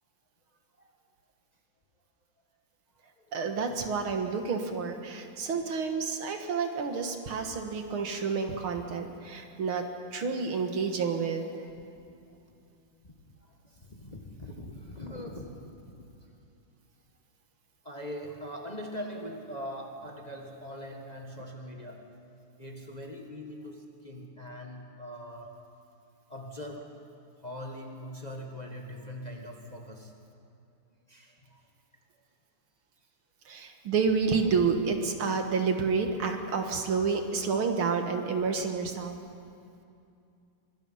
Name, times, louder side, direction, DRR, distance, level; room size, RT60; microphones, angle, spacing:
voice 1, 3.3-9.8 10.1-11.5 33.5-39.2, right 5 dB, 70° right, 5 dB, 2.4 m, -29 dB
voice 2, 7.2-7.9 12.1-12.4 13.4-16.0 17.8-22.1 22.6-25.5 26.3-27.0 27.4-30.1 31.1-31.6 34.3-34.4, equal, 20° left, 1 dB, 1.5 m, -42 dB
24.5 x 22.0 x 5.6 m, 2.5 s
omnidirectional pair, 2.4 m